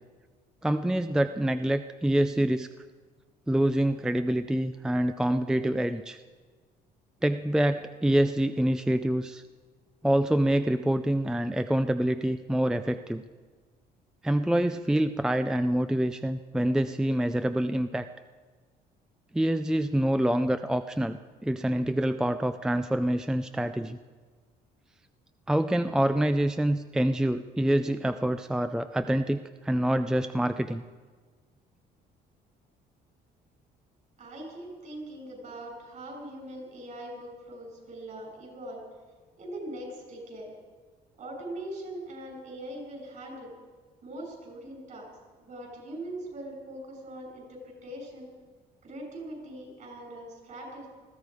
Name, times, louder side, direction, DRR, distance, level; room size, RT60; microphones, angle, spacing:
voice 1, 0.6-2.7 3.5-6.2 7.2-9.4 10.0-13.2 14.2-18.1 19.3-24.0 25.5-30.8, right 1 dB, 5° right, 10 dB, 0.4 m, -26 dB
voice 2, 34.2-38.8 39.4-40.5 41.2-43.5 44.0-45.1 45.4-48.3 48.8-50.9, right 1 dB, 50° right, 1 dB, 6.6 m, -41 dB
20.0 x 14.5 x 4.8 m, 1.4 s
cardioid pair, 110°, 17 cm